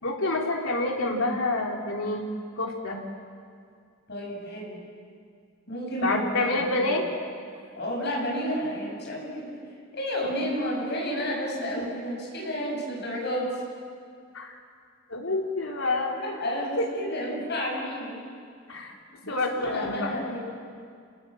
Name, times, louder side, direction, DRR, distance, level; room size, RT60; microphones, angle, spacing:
voice 1, 0.0-2.3 2.6-3.0 6.0-7.1 11.8-11.9 14.3-14.5 15.1-16.1 16.8-16.9 18.7-18.9 19.3-20.1, left 2 dB, 85° left, 0 dB, 3.4 m, -27 dB
voice 2, 4.1-4.8 5.7-6.9 7.7-9.5 9.9-13.5 16.1-18.2 19.2-20.4, equal, 55° left, -2 dB, 7.9 m, -31 dB
30.0 x 18.5 x 7.6 m, 2.2 s
head